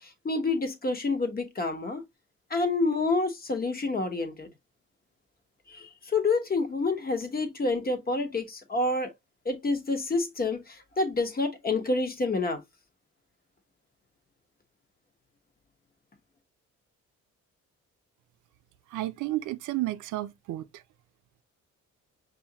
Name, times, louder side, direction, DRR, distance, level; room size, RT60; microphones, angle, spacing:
voice 1, 0.0-2.0 2.5-4.5 5.7-9.1 9.4-12.6, left 3 dB, 30° left, 1.2 m, -28 dB
voice 2, 18.9-20.8, right 16 dB, 85° right, 0.5 m, -32 dB
5.5 x 2.7 x 2.8 m
cardioid pair, 90°, 30 cm